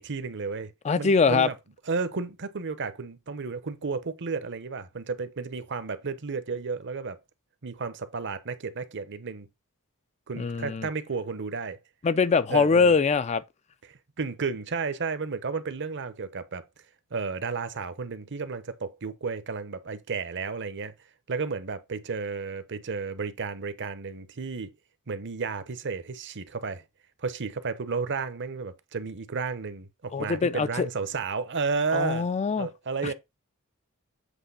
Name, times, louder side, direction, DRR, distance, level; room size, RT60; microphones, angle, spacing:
voice 1, 0.0-0.7 1.0-1.5 1.9-7.2 7.6-9.5 10.3-11.8 12.5-13.0 13.9-16.6 17.1-20.9 21.3-24.7 25.1-26.8 27.2-32.3 32.6-33.1, right 4 dB, 55° right, 0.9 m, -32 dB
voice 2, 0.8-1.5 10.4-10.9 12.0-13.4 30.1-30.9 31.9-32.7 33.0-33.1, left 5 dB, 30° left, 0.4 m, -23 dB
8.1 x 3.1 x 5.5 m
head